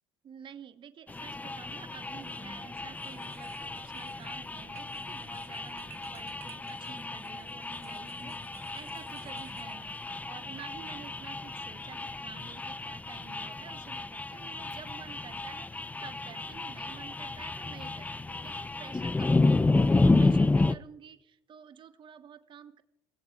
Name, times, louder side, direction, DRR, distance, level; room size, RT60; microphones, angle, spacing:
voice 1, 0.2-18.1 18.4-22.8, right 8 dB, 45° right, 11 dB, 1.1 m, -50 dB
sound 1, 1.1-20.7, left 3 dB, 15° left, 0.6 m, -31 dB
sound 2, 2.2-2.5 2.9-10.1, right 14 dB, 60° right, 1.4 m, -56 dB
29.0 x 18.5 x 2.4 m, 0.86 s
hypercardioid pair, 70°, 11 cm